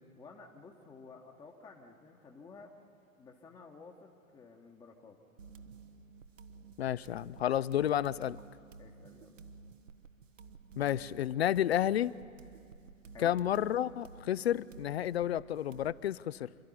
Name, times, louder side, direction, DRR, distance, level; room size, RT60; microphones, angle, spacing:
voice 1, 0.1-2.7 3.2-5.2 8.8-9.4 13.1-13.4, left 4 dB, 10° left, 1 dB, 1.1 m, -53 dB
sound 1, 5.4-16.0, right 5 dB, 65° right, 1.1 m, -53 dB
voice 2, 6.8-8.4 10.8-12.1 13.2-16.5, left 11 dB, 50° left, 19 dB, 0.5 m, -31 dB
27.5 x 12.5 x 9.9 m, 2.3 s
figure-of-eight pair, 110°, 41 cm